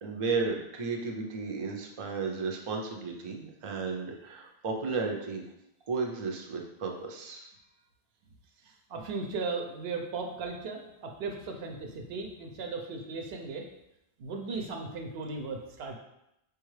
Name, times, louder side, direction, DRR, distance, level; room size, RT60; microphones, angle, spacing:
voice 1, 0.0-5.4 5.9-7.5, right 4 dB, 45° right, 1 dB, 0.4 m, -33 dB
voice 2, 8.9-13.7 14.2-15.9, right 4 dB, 75° right, 3 dB, 0.8 m, -36 dB
4.7 x 2.3 x 3.1 m, 0.84 s
omnidirectional pair, 1.0 m